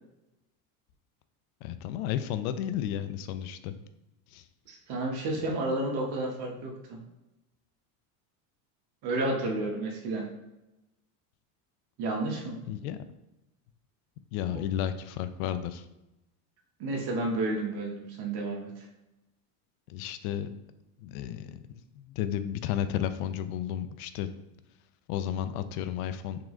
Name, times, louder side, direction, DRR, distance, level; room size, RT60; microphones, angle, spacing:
voice 1, 1.6-3.7 4.3-4.4 5.3-5.5 12.7-13.0 14.3-15.8 19.9-20.5 21.0-21.6 21.9-24.3 25.1-26.4, left 10 dB, 75° left, 11 dB, 0.5 m, -32 dB
voice 2, 4.7-7.0 9.0-10.3 12.0-12.6 16.8-18.7, right 2 dB, 55° right, 1 dB, 1.3 m, -31 dB
3.8 x 3.0 x 3.7 m, 0.94 s
supercardioid pair, 100°, 44 cm